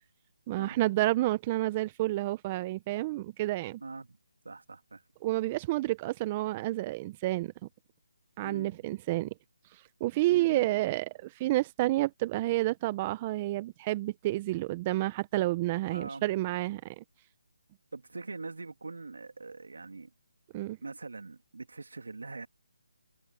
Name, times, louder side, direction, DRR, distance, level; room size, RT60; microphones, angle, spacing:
voice 1, 0.5-3.8 5.2-7.5 8.4-9.3 10.0-17.0 20.5-20.8, right 17 dB, 25° right, 0.7 m, -30 dB
voice 2, 3.8-4.2 4.4-5.0 8.4-8.8 10.3-10.8 15.9-16.5 17.9-20.1 20.8-22.5, right 3 dB, 80° right, 2.9 m, -43 dB
figure-of-eight pair, 160°, 0 cm